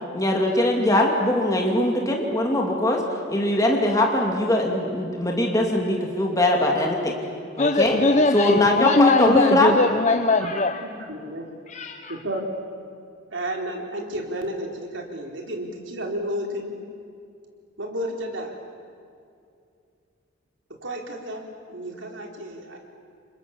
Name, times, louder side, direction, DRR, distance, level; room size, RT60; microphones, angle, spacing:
voice 1, 0.1-3.0 3.3-7.1 7.6-8.0 8.3-9.8, left 1 dB, 15° left, 0 dB, 2.6 m, -21 dB
voice 2, 7.6-10.9 11.7-12.2, left 2 dB, 35° left, 6 dB, 0.9 m, -21 dB
voice 3, 10.4-11.5 12.1-12.4 13.3-16.7 17.8-18.5 20.8-22.8, equal, 65° right, 1 dB, 4.0 m, -32 dB
30.0 x 25.0 x 7.2 m, 2.4 s
head